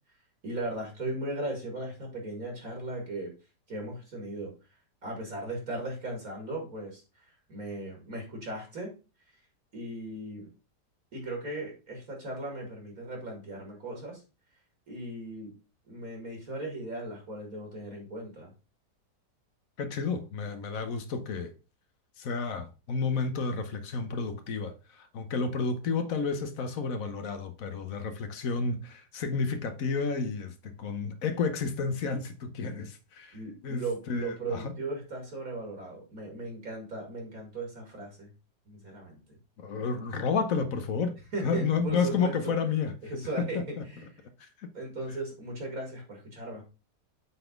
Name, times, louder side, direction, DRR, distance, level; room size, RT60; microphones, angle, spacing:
voice 1, 0.4-3.3 3.7-4.5 5.0-8.9 9.7-10.5 11.1-14.2 14.9-15.5 15.9-18.5 33.3-38.3 38.7-39.4 41.3-42.5 43.1-44.1 44.7-46.6, right 2 dB, 55° right, 2.8 m, -37 dB
voice 2, 19.8-21.5 22.2-33.4 33.6-34.6 39.6-41.2 41.4-42.9 43.4-43.8, left 5 dB, 60° left, 1.2 m, -31 dB
7.9 x 4.0 x 5.1 m
omnidirectional pair, 1.8 m